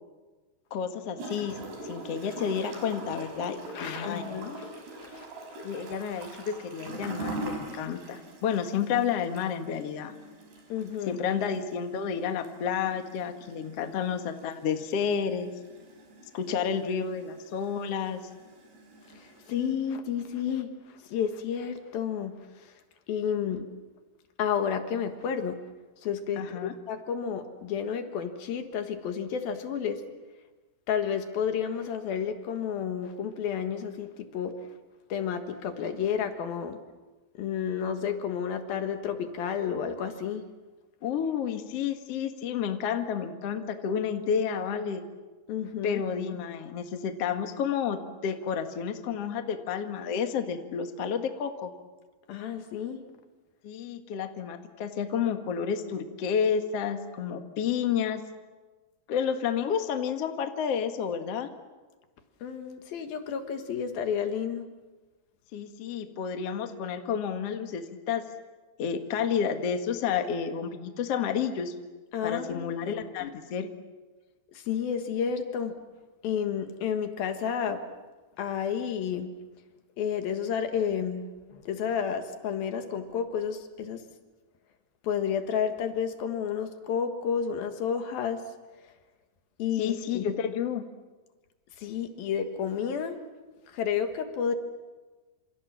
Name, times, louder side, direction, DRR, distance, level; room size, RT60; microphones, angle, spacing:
voice 1, 0.7-4.2 5.6-10.1 11.1-15.5 16.3-18.2 26.4-26.7 41.0-45.0 45.8-51.7 53.6-58.2 59.1-61.5 65.5-68.2 68.8-71.7 72.2-73.7 89.8-90.8, left 7 dB, 50° left, 6 dB, 2.1 m, -30 dB
Gurgling / Toilet flush, 1.2-19.7, right 2 dB, 80° right, 7.3 m, -43 dB
voice 2, 3.7-4.7 5.0-5.3 10.7-11.2 19.1-22.7 23.1-23.7 24.4-25.6 26.0-30.0 30.9-34.6 35.1-36.8 37.3-40.4 45.5-46.0 52.3-53.0 62.4-64.7 72.1-72.7 73.2-73.3 74.5-75.7 76.2-77.8 78.4-79.3 80.0-84.0 85.0-88.4 89.6-90.2 91.8-93.2 93.7-94.6, left 7 dB, 65° left, 7 dB, 3.2 m, -31 dB
28.0 x 27.5 x 7.4 m, 1.3 s
omnidirectional pair, 4.7 m